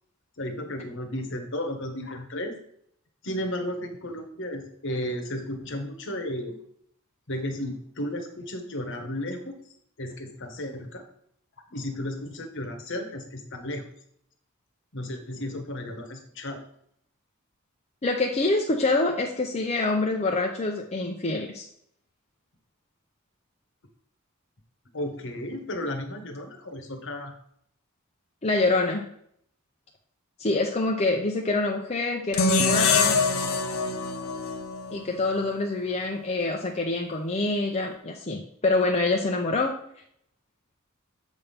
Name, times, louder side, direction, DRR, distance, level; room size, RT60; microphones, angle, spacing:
voice 1, 0.4-2.6 3.2-6.6 7.3-9.6 10.0-11.0 11.7-13.8 14.9-16.6 24.9-27.3, left 1 dB, 60° left, 5 dB, 1.2 m, -33 dB
voice 2, 18.0-21.7 28.4-29.1 30.4-33.2 34.9-39.8, left 2 dB, 30° left, 1 dB, 0.6 m, -26 dB
sound 1, 32.3-35.5, left 4 dB, 80° left, 0.8 m, -24 dB
7.2 x 3.5 x 5.7 m, 0.68 s
head